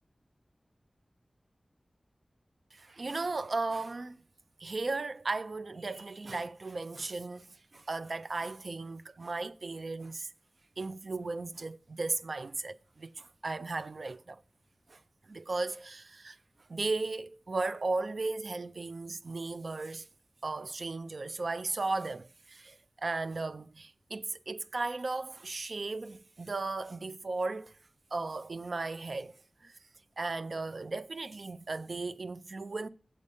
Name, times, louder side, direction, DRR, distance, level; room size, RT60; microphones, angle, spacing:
voice 1, 2.7-4.2 4.6-10.3 10.8-14.4 14.9-15.0 15.3-16.4 16.7-20.1 20.4-27.7 28.1-29.3 29.6-29.7 30.2-32.9, right 3 dB, 70° right, 0.3 m, -36 dB
7.4 x 6.8 x 5.3 m
wide cardioid pair, 75°, 0 cm